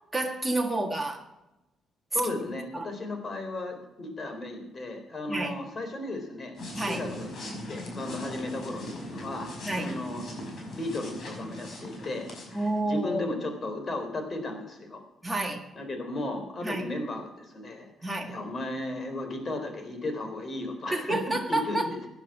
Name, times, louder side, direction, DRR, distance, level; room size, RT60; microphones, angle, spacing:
voice 1, 0.1-1.3 2.2-2.3 2.7-2.9 5.3-5.5 6.7-7.0 9.6-9.9 12.5-13.4 15.2-15.6 16.6-16.9 18.0-18.3 20.9-21.9, right 2 dB, 10° right, 0 dB, 1.8 m, -29 dB
voice 2, 2.1-6.6 6.9-7.4 7.7-9.5 9.8-10.5 10.7-15.0 15.8-22.0, left 2 dB, 40° left, 6 dB, 4.0 m, -35 dB
sound 1, 6.5-13.0, left 1 dB, 55° left, 5.6 m, -39 dB
16.5 x 10.0 x 4.9 m, 0.96 s
cardioid pair, 90°, 0 cm